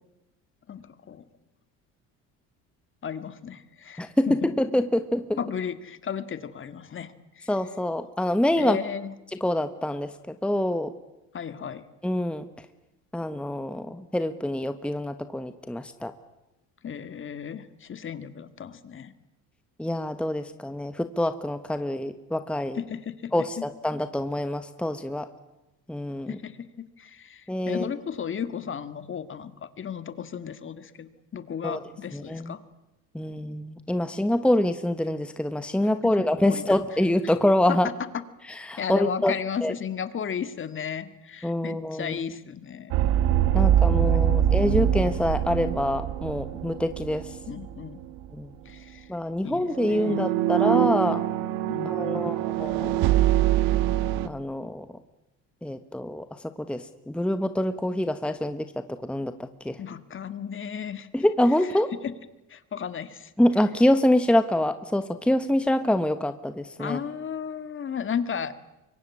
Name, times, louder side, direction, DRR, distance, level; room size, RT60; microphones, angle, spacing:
voice 1, 0.7-1.2 3.0-4.5 5.4-7.5 8.6-9.1 11.3-11.9 16.8-19.1 22.8-23.7 26.3-32.6 36.0-36.8 37.2-37.3 37.7-38.2 38.8-43.1 43.5-44.2 47.5-48.0 48.7-49.1 49.4-50.4 51.7-52.3 59.8-61.1 62.0-62.1 62.5-63.3 66.8-68.6, left 7 dB, 35° left, 12 dB, 1.9 m, -34 dB
voice 2, 4.0-5.4 7.5-8.8 9.4-10.9 12.0-12.4 13.1-16.1 19.8-22.8 23.3-25.3 25.9-26.4 27.5-27.9 31.6-31.8 32.1-32.5 33.1-37.9 38.6-39.3 39.6-39.7 41.4-42.2 43.5-47.4 48.3-48.5 49.1-51.2 51.8-53.1 54.2-54.8 55.6-59.8 61.1-61.9 63.4-67.0, left 1 dB, 5° left, 10 dB, 1.2 m, -26 dB
sound 1, 42.9-47.8 48.0-48.3 49.7-54.3, right 11 dB, 85° right, 1.4 m, -24 dB
24.5 x 23.0 x 9.8 m, 0.95 s
cardioid pair, 105°, 34 cm